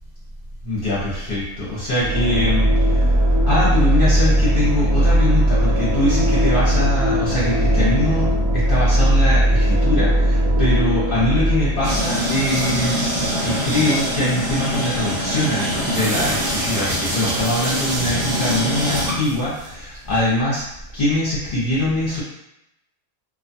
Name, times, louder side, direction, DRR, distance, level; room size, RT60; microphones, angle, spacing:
voice 1, 0.6-20.6 20.9-22.2, left 1 dB, 50° left, -8 dB, 0.8 m, -23 dB
sound 1, 2.0-12.8, right 1 dB, 80° right, 1.1 m, -18 dB
sound 2, 11.8-19.7, equal, 55° right, 0.9 m, -23 dB
2.4 x 2.2 x 2.6 m, 0.83 s
omnidirectional pair, 1.5 m